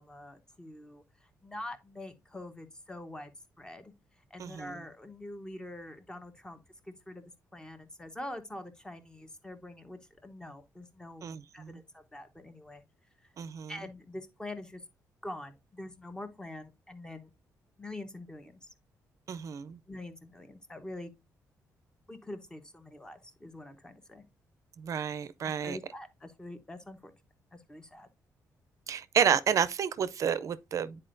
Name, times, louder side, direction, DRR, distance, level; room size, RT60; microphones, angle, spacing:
voice 1, 0.0-3.9 4.3-11.2 11.5-12.8 13.7-14.8 15.2-17.3 17.8-18.6 19.9-21.1 22.1-24.2 25.4-27.1 27.5-28.1, left 1 dB, 10° left, 1.0 m, -45 dB
voice 2, 4.4-4.7 11.2-11.7 13.4-13.7 19.3-19.8 24.8-25.8 28.9-31.0, right 7 dB, 55° right, 0.5 m, -30 dB
9.7 x 4.3 x 2.6 m
cardioid pair, 110°, 7 cm